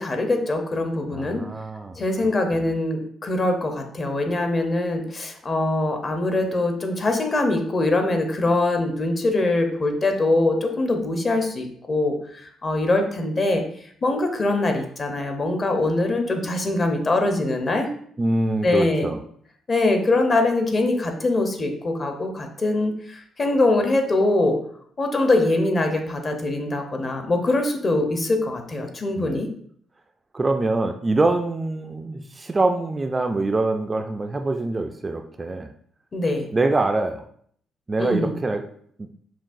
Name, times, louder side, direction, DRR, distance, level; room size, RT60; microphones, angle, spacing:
voice 1, 0.0-1.4 2.0-13.6 14.0-17.9 18.6-19.1 19.7-24.6 25.0-29.5 36.1-36.4 38.0-38.3, left 2 dB, 35° left, 5 dB, 0.7 m, -23 dB
voice 2, 1.1-2.6 18.2-19.2 29.2-29.4 30.3-35.7 36.5-37.2 37.9-38.6 39.0-39.1, right 2 dB, 25° right, 5 dB, 0.3 m, -24 dB
5.8 x 2.4 x 2.5 m, 0.62 s
cardioid pair, 90°, 0 cm